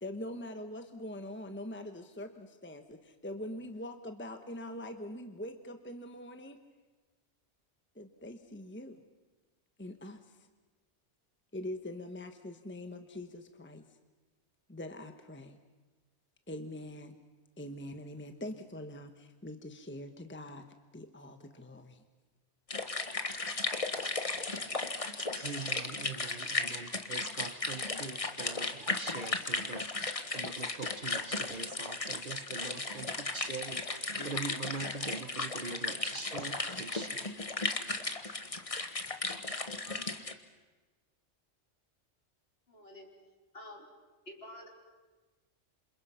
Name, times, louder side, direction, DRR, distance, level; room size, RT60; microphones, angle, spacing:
voice 1, 0.0-6.6 7.9-9.0 9.8-10.5 11.5-13.9 14.7-15.6 16.5-17.2 17.6-20.7 20.9-22.0, left 1 dB, 10° left, 7 dB, 1.1 m, -43 dB
sound 1, 22.7-40.3, left 3 dB, 30° left, 1.4 m, -35 dB
voice 2, 25.2-37.2, right 4 dB, 45° right, 9 dB, 1.2 m, -43 dB
voice 3, 42.7-43.1 43.5-43.9 44.3-44.7, left 1 dB, 60° left, 0 dB, 4.2 m, -48 dB
27.5 x 27.0 x 5.7 m, 1.3 s
omnidirectional pair, 1.2 m